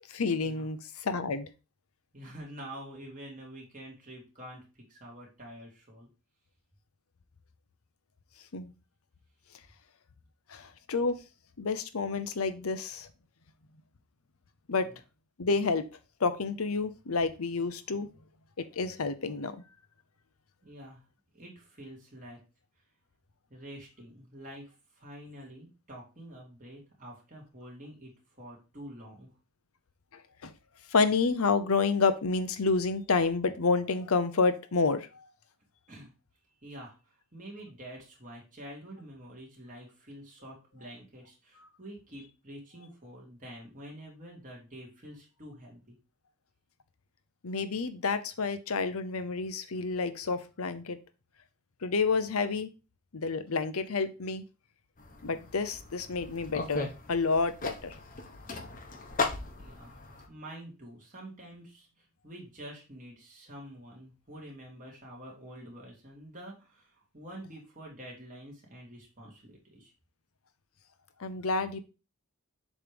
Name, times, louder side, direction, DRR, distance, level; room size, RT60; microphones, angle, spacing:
voice 1, 0.1-1.5 8.5-8.7 10.5-11.2 11.6-13.1 14.7-14.9 15.4-15.9 16.2-18.1 18.6-19.6 30.4-30.5 30.9-35.2 47.4-51.0 51.8-52.7 53.1-54.4 55.2-58.0 71.2-71.8, left 4 dB, 85° left, 12 dB, 0.7 m, -29 dB
voice 2, 2.1-6.1 14.8-15.0 20.6-21.0 21.3-22.4 23.5-29.3 35.9-36.1 36.6-45.9 59.5-60.0 60.3-69.9, right 1 dB, 35° right, -2 dB, 2.5 m, -47 dB
sound 1, 55.0-60.3, left 3 dB, 35° left, 1.0 m, -37 dB
7.2 x 3.3 x 5.1 m, 0.31 s
head